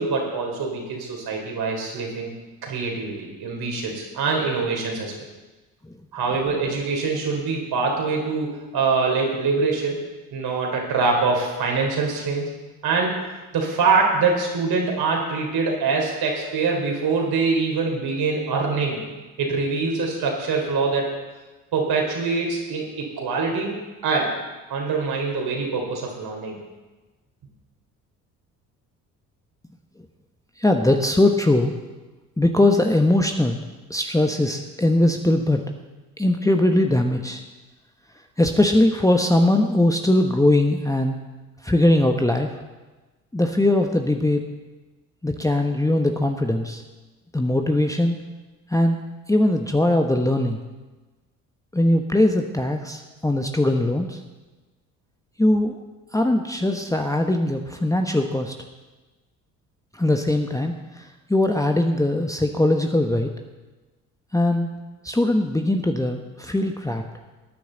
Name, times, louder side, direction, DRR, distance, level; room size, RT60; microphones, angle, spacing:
voice 1, 0.0-2.3 2.6-5.1 6.1-10.0 10.3-12.5 12.8-13.2 13.5-19.0 19.4-21.1 21.7-23.7 24.0-24.3 24.7-26.6, right 4 dB, 55° right, 0 dB, 3.8 m, -24 dB
voice 2, 30.6-31.7 32.4-33.6 33.9-35.6 36.2-37.4 38.4-41.2 41.6-42.5 43.3-44.4 45.2-46.8 47.3-48.3 48.7-50.6 51.7-54.2 55.4-55.8 56.1-58.5 59.9-63.3 64.3-64.8 65.0-67.0, left 1 dB, 5° left, 3 dB, 1.2 m, -20 dB
19.0 x 9.9 x 4.0 m, 1.2 s
hypercardioid pair, 50°, 45 cm